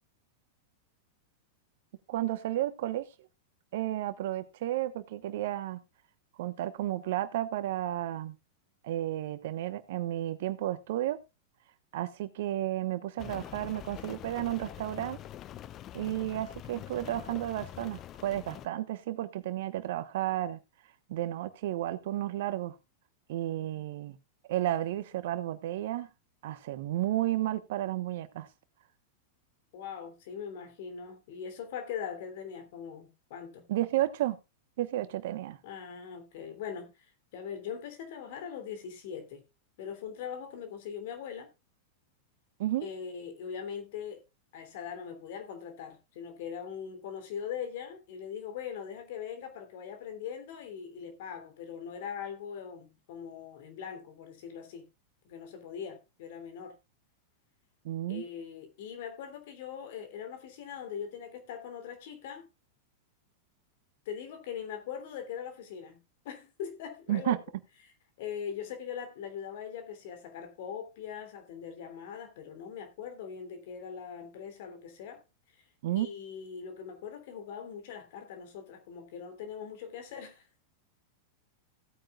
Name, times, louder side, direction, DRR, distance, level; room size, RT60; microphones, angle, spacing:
voice 1, 2.1-3.0 3.7-5.8 6.4-8.3 8.8-11.2 11.9-15.2 15.9-20.6 21.1-22.7 23.3-24.2 24.5-26.1 26.4-28.5 33.7-34.4 34.8-35.6 42.6-42.9 57.8-58.2 67.1-67.4 75.8-76.1, right 14 dB, 60° right, 1.1 m, -32 dB
Rain, 13.2-18.7, left 12 dB, 35° left, 0.6 m, -45 dB
voice 2, 29.7-33.7 35.6-37.1 37.3-39.4 39.8-41.5 42.8-44.2 44.5-54.9 55.2-56.8 58.1-62.5 64.0-66.0 66.2-67.4 68.2-75.2 75.9-80.5, left 7 dB, 55° left, 3.0 m, -41 dB
16.5 x 8.9 x 2.4 m
figure-of-eight pair, 95°, 0 cm